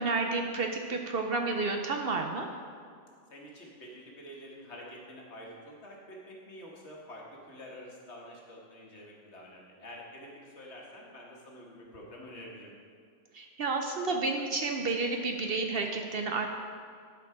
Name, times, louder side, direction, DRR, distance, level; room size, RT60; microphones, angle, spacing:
voice 1, 0.0-2.5 13.3-16.5, right 3 dB, 60° right, 3 dB, 0.7 m, -31 dB
voice 2, 3.3-12.7, equal, 65° left, -2 dB, 1.6 m, -48 dB
11.0 x 4.7 x 4.8 m, 2.2 s
omnidirectional pair, 1.3 m